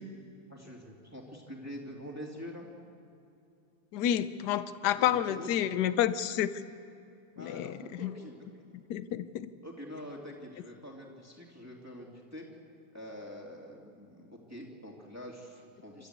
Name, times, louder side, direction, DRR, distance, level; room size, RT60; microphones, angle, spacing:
voice 1, 0.5-2.7 4.8-5.8 7.4-8.7 9.6-12.4 12.9-16.1, equal, 5° right, -2 dB, 2.6 m, -45 dB
voice 2, 3.9-6.5 7.4-7.7 8.0-8.1 8.9-9.5, left 11 dB, 65° left, 13 dB, 1.2 m, -29 dB
29.5 x 13.0 x 8.3 m, 2.6 s
omnidirectional pair, 2.3 m